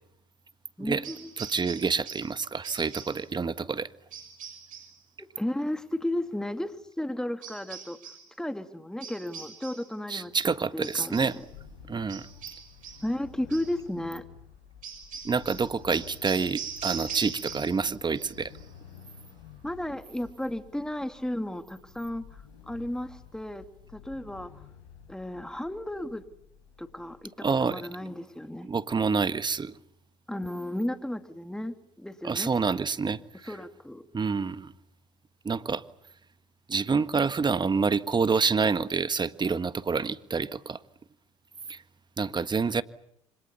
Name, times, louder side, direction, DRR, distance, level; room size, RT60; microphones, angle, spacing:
voice 1, 0.8-1.3 5.2-8.0 8.4-10.3 10.7-11.3 13.0-14.3 19.6-23.7 23.9-24.5 25.1-26.2 26.8-28.7 30.3-32.5 33.4-34.0, left 1 dB, 5° left, 2.5 m, -34 dB
sound 1, 1.0-2.4 2.6-3.3 4.1-5.0 7.4-8.3 9.0-9.9 10.8-11.4 12.1-13.1 13.5-13.8 14.8-17.9 18.1-18.6, right 7 dB, 55° right, 6.5 m, -41 dB
voice 2, 1.4-3.9 10.1-11.3 11.9-12.3 15.2-18.5 27.4-28.1 28.6-29.7 32.2-33.5 34.1-34.7 35.4-35.8 36.7-40.8 41.7-41.8 42.2-42.8, right 5 dB, 30° right, 1.6 m, -27 dB
sound 2, 11.3-27.3, left 8 dB, 85° left, 5.3 m, -51 dB
28.0 x 26.0 x 7.1 m
hypercardioid pair, 70°, 16 cm